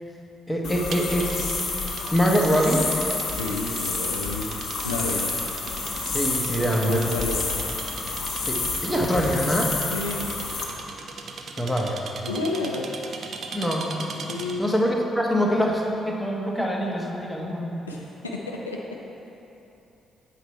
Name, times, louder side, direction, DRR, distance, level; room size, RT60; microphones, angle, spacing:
voice 1, 0.5-1.3 2.1-2.9 6.1-7.0 8.5-9.7 11.6-12.0 13.5-13.9 14.6-17.7, equal, 10° left, 0 dB, 1.1 m, -24 dB
sound 1, 0.6-10.6, left 3 dB, 50° left, 1.0 m, -29 dB
sound 2, 0.9-14.7, right 4 dB, 50° right, 0.5 m, -39 dB
voice 2, 3.3-4.5 4.8-5.3 6.6-7.5 9.9-10.3 12.2-12.8 14.3-14.6 17.9-18.8, left 3 dB, 85° left, -2 dB, 0.4 m, -30 dB
8.1 x 4.5 x 4.3 m, 2.9 s
figure-of-eight pair, 40°, 0 cm